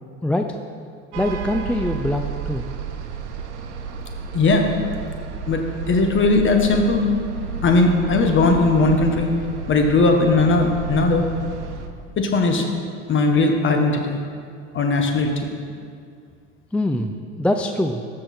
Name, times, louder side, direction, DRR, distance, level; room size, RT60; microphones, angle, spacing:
voice 1, 0.2-0.5 1.2-2.7 16.7-18.0, left 1 dB, 5° left, 5 dB, 0.4 m, -23 dB
sound 1, 1.1-11.9, right 5 dB, 85° right, 0.9 m, -31 dB
voice 2, 4.3-4.7 5.5-5.6 5.9-7.0 7.6-9.3 9.7-11.2 12.2-12.6 13.1-14.2 14.7-15.5, left 3 dB, 35° left, 3 dB, 1.5 m, -18 dB
13.5 x 6.5 x 4.4 m, 2.2 s
hypercardioid pair, 80°, 35 cm